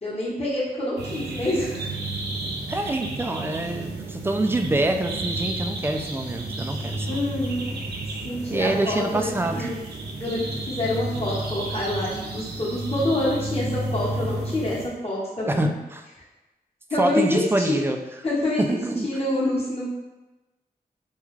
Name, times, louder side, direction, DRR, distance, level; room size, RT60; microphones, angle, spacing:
voice 1, 0.0-1.9 7.0-7.7 8.2-9.8 10.2-15.7 16.9-17.8 18.2-18.8 19.0-19.9, left 1 dB, 40° left, -8 dB, 1.0 m, -27 dB
sound 1, 1.0-14.9, right 2 dB, 85° right, 0.4 m, -32 dB
voice 2, 2.7-7.2 8.5-9.7 15.4-16.1 17.0-18.0 18.6-19.1, right 2 dB, 15° right, 4 dB, 0.3 m, -25 dB
2.3 x 2.3 x 3.1 m, 1.1 s
cardioid pair, 45°, 17 cm